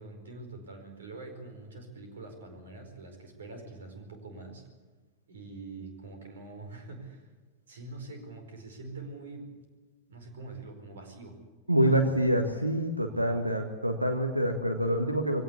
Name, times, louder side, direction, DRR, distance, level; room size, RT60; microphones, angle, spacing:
voice 1, 0.0-4.7 5.3-7.3 7.7-9.6 10.1-11.4 11.7-11.9 13.1-13.4, right 3 dB, 65° right, 6 dB, 4.8 m, -45 dB
voice 2, 11.7-15.4, right 1 dB, 85° right, 5 dB, 1.5 m, -26 dB
22.5 x 17.0 x 8.4 m, 1.3 s
figure-of-eight pair, 90°, 0 cm